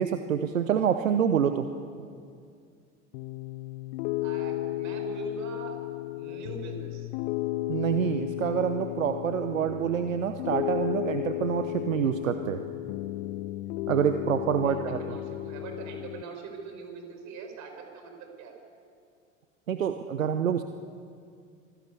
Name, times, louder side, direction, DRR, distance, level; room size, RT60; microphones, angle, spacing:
voice 1, 0.0-1.7 7.7-12.6 13.9-15.0 19.7-20.6, right 8 dB, 75° right, 9 dB, 1.0 m, -27 dB
Piano, 3.1-16.2, left 16 dB, 50° left, 0.7 m, -34 dB
voice 2, 4.2-5.8 6.1-7.1 14.6-18.5, right 5 dB, 45° right, 3 dB, 6.0 m, -42 dB
25.5 x 18.5 x 8.3 m, 2.3 s
figure-of-eight pair, 75°, 40 cm